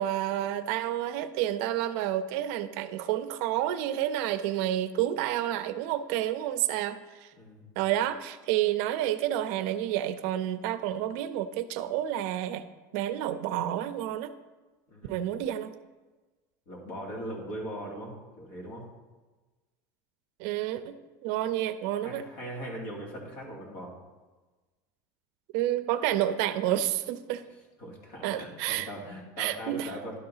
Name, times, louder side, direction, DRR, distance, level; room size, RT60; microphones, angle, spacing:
voice 1, 0.0-7.3 7.8-12.6 12.9-14.3 15.1-15.7 20.4-21.0 21.2-22.3 25.5-27.4 28.2-28.9 29.4-30.2, right 12 dB, 65° right, 12 dB, 0.5 m, -29 dB
voice 2, 7.3-7.8 14.9-15.2 16.7-18.8 22.0-23.9 27.8-30.2, equal, 55° left, -2 dB, 2.3 m, -40 dB
11.0 x 3.9 x 5.5 m, 1.2 s
cardioid pair, 165°, 9 cm